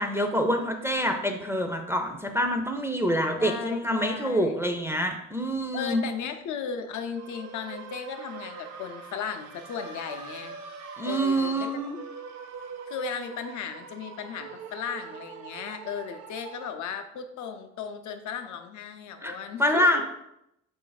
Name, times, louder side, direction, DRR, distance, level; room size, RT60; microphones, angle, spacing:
voice 1, 0.0-6.0 11.0-12.0 19.2-20.0, equal, 10° right, 3 dB, 0.3 m, -26 dB
voice 2, 3.4-4.6 5.7-10.6 11.0-11.7 12.9-20.0, left 7 dB, 75° left, 7 dB, 0.5 m, -36 dB
sound 1, 7.1-16.7, right 6 dB, 60° right, 0.5 m, -43 dB
sound 2, 8.0-11.7, right 3 dB, 85° right, 0.8 m, -48 dB
4.0 x 2.6 x 3.9 m, 0.83 s
cardioid pair, 90°, 30 cm